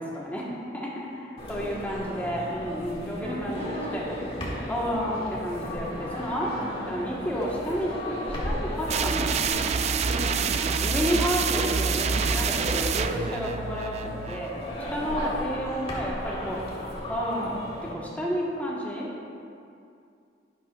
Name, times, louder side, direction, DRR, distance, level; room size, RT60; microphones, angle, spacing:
voice 1, 0.0-4.1 4.7-9.4 10.8-14.5 14.9-16.8 17.1-19.1, equal, 10° left, -5 dB, 1.5 m, -31 dB
sound 1, 1.4-17.9, equal, 35° left, 2.2 m, -36 dB
voice 2, 3.2-4.0 6.6-7.0 10.1-10.8 15.1-15.4, equal, 85° right, -3 dB, 2.3 m, -37 dB
sound 2, 8.9-14.5, right 5 dB, 40° right, 0.3 m, -27 dB
11.5 x 11.5 x 2.5 m, 2.4 s
head